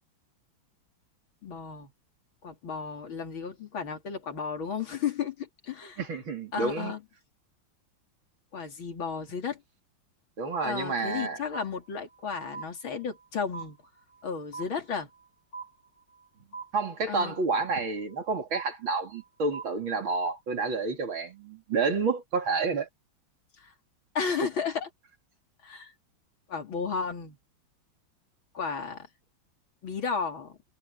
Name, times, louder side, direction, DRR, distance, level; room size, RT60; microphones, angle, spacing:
voice 1, 1.4-1.9 2.4-6.0 6.5-7.0 8.5-9.6 10.6-13.8 14.2-15.1 17.1-17.4 23.6-23.7 24.2-24.9 25.6-25.9 26.5-27.4 28.5-29.1 29.8-30.5, left 6 dB, 90° left, 3.6 m, -33 dB
voice 2, 6.0-6.9 10.4-11.4 16.7-22.9, right 4 dB, 80° right, 3.7 m, -29 dB
sound 1, 10.5-11.2 11.5-12.3 12.5-13.3 13.5-14.3 14.5-15.3 15.5-16.3 16.5-17.3 17.5-18.3 18.5-19.3 19.5-20.3, right 5 dB, 40° left, 2.2 m, -43 dB
omnidirectional pair, 2.1 m